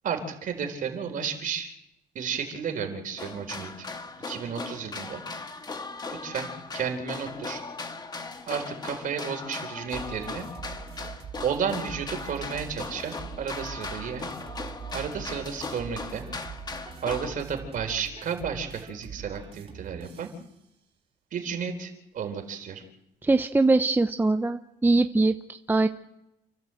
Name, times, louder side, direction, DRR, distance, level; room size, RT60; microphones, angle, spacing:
voice 1, 0.0-1.7 2.1-3.9 4.3-5.2 6.1-6.5 6.7-7.6 8.5-10.5 11.4-14.3 14.9-16.3 17.0-20.3 21.3-22.8, right 7 dB, 55° right, 4 dB, 4.3 m, -32 dB
sound 1, 3.2-17.4, left 3 dB, 25° left, 1.5 m, -38 dB
sound 2, 9.9-20.5, right 7 dB, 35° right, 3.3 m, -43 dB
voice 2, 23.2-25.9, right 2 dB, 10° right, 8 dB, 0.8 m, -22 dB
29.5 x 12.5 x 7.8 m, 0.87 s
cardioid pair, 110°, 17 cm